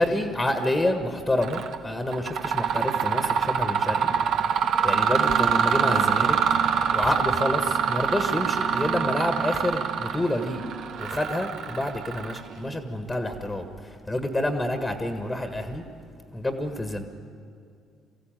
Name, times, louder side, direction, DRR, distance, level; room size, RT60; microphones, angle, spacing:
voice 1, 0.0-4.1 4.8-6.4 6.9-10.6 11.0-15.8 16.3-17.0, left 1 dB, 15° left, 8 dB, 1.7 m, -28 dB
Mechanisms, 1.4-1.8 2.1-12.7, right 7 dB, 60° right, 1.2 m, -25 dB
23.0 x 15.5 x 9.1 m, 2.3 s
hypercardioid pair, 50°, 0 cm